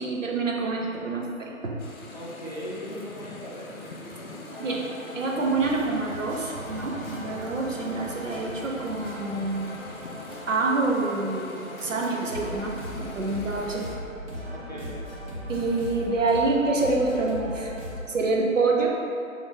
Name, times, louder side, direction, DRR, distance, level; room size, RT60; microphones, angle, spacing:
voice 1, 0.0-1.8 4.6-4.9 5.1-9.7 10.5-13.9 15.5-17.7 18.1-19.0, right 3 dB, 65° right, -1 dB, 0.6 m, -27 dB
sound 1, 1.8-14.0, left 2 dB, 85° left, 0.6 m, -43 dB
voice 2, 2.1-4.4 14.5-14.9, equal, 35° left, -8 dB, 0.5 m, -39 dB
sound 2, 4.4-18.0, left 1 dB, 45° right, 1.3 m, -39 dB
sound 3, 5.3-11.0, right 1 dB, 20° right, 0.6 m, -44 dB
3.4 x 2.6 x 3.7 m, 2.5 s
figure-of-eight pair, 150°, 41 cm